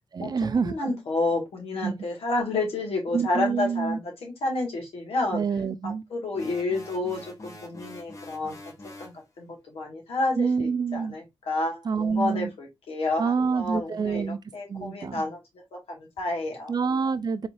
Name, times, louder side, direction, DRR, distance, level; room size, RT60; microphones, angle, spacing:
voice 1, 0.1-0.9 1.8-1.9 3.1-4.0 5.3-6.0 10.4-11.2 11.8-12.5 13.2-14.4 14.7-15.2 16.7-17.5, right 5 dB, 45° right, 0.4 m, -27 dB
voice 2, 0.6-5.4 5.8-8.5 9.0-15.4 15.7-16.7, left 2 dB, 85° left, 1.8 m, -30 dB
sound 1, 6.3-9.2, left 1 dB, 35° left, 1.0 m, -44 dB
4.0 x 3.1 x 2.6 m
cardioid pair, 65°, 10 cm